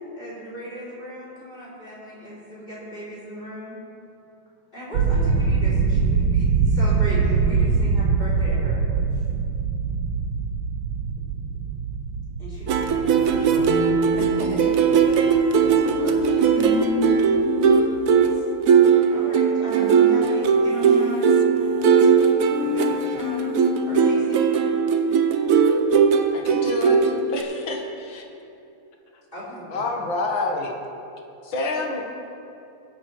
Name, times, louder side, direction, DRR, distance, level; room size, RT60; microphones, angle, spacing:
voice 1, 0.1-3.8 4.7-8.8 9.1-9.2 11.2-11.6 12.4-13.7 19.1-21.4 22.5-23.5 23.9-24.5 29.3-29.8, equal, 25° left, -8 dB, 3.5 m, -37 dB
sound 1, 4.9-16.8 17.1-17.4 17.8-18.0, right 5 dB, 70° right, 1.3 m, -24 dB
sound 2, 12.7-27.4, right 6 dB, 90° right, 0.7 m, -19 dB
voice 2, 13.2-13.8 14.2-15.2 15.5-16.8 17.3-17.5, right 1 dB, 45° right, -4 dB, 2.7 m, -37 dB
sound 3, 13.5-18.4 18.7-18.8 19.0-19.1 19.7-20.3 20.6-24.2, left 8 dB, 90° left, 0.7 m, -31 dB
voice 3, 26.3-27.0 27.3-28.2 29.7-30.7 31.4-32.0, left 3 dB, 65° left, 1 dB, 2.1 m, -28 dB
21.5 x 9.4 x 3.1 m, 2.8 s
omnidirectional pair, 2.4 m